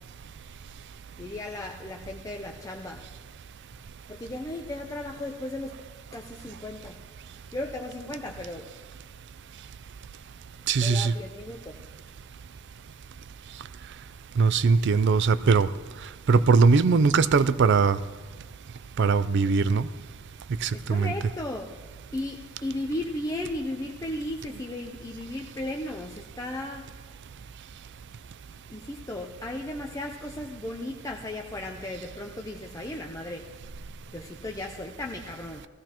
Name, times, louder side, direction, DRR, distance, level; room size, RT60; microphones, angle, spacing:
voice 1, 1.2-3.1 4.1-5.8 6.1-7.0 7.5-8.7 10.8-11.8 17.3-17.4 20.7-21.7 22.1-26.9 28.7-33.5 34.1-35.7, left 1 dB, 15° left, 1 dB, 0.5 m, -35 dB
voice 2, 10.7-11.1 14.4-15.7 16.3-18.0 19.0-19.9 20.6-21.1, right 4 dB, 55° right, 15 dB, 0.4 m, -20 dB
18.0 x 15.0 x 3.0 m, 1.4 s
head